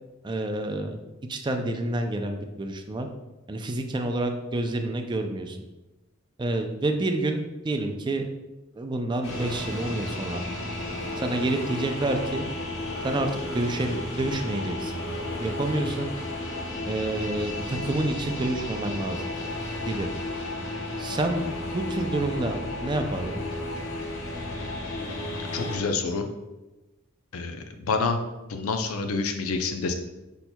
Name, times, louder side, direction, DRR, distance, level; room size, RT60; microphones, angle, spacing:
voice 1, 0.2-1.0 1.3-3.1 3.5-5.6 6.4-8.3 8.7-10.4 11.2-12.4 13.0-14.9 15.4-16.1 16.8-19.3 19.9-20.1 21.0-21.5 21.7-23.4, right 2 dB, 20° right, 5 dB, 0.3 m, -28 dB
sound 1, 9.2-25.8, left 2 dB, 65° left, 1.1 m, -33 dB
voice 2, 25.5-26.3 27.3-28.2 28.5-29.9, left 4 dB, 90° left, 6 dB, 0.5 m, -27 dB
5.3 x 4.4 x 2.2 m, 1.1 s
head